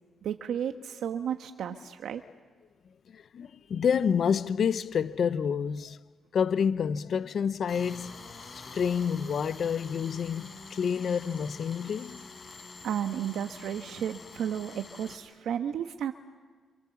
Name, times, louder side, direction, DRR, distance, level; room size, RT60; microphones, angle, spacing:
voice 1, 0.2-2.2 12.8-16.1, right 9 dB, 80° right, 1.2 m, -33 dB
voice 2, 3.1-6.0 6.3-12.3, left 7 dB, 65° left, 0.8 m, -29 dB
Tools, 7.7-15.2, left 4 dB, 45° left, 6.3 m, -47 dB
28.5 x 27.0 x 7.3 m
supercardioid pair, 60°, 0 cm